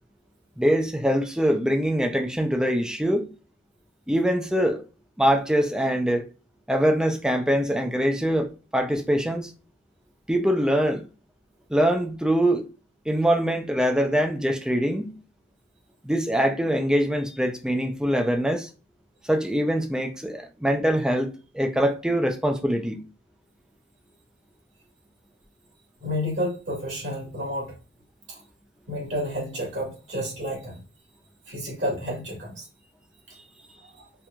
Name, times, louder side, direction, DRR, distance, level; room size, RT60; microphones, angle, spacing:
voice 1, 0.6-3.3 4.1-4.8 5.2-6.3 6.7-9.5 10.3-11.1 11.7-12.6 13.1-15.1 16.0-18.7 19.2-23.0, equal, 5° right, 0.4 m, -23 dB
voice 2, 26.0-27.7 28.9-30.8 31.5-32.7 33.9-34.0, equal, 60° right, 1.7 m, -30 dB
4.4 x 2.5 x 2.3 m
head